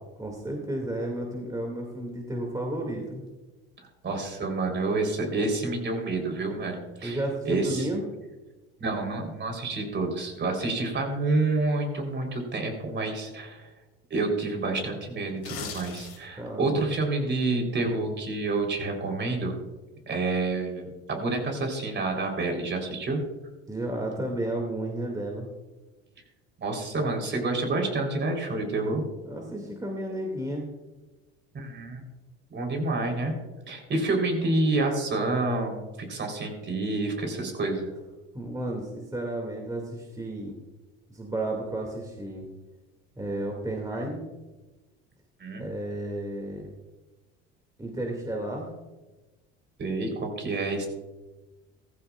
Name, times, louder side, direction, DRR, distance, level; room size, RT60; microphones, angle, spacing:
voice 1, 0.2-3.2 7.0-8.0 16.4-16.9 23.7-25.5 29.2-30.7 38.3-40.5 41.1-42.4 43.2-44.2 45.5-46.7 47.8-48.7, right 1 dB, 10° right, 1 dB, 2.3 m, -32 dB
voice 2, 3.8-7.9 8.8-13.7 14.1-19.5 20.1-23.2 26.6-29.0 31.5-32.0 32.5-33.3 33.7-37.9 45.4-45.7 49.8-50.9, right 2 dB, 40° right, 2 dB, 3.9 m, -28 dB
sound 1, 15.3-16.5 16.9-17.0, left 6 dB, 50° left, 3.8 m, -39 dB
15.0 x 15.0 x 2.5 m, 1.1 s
supercardioid pair, 85°, 30 cm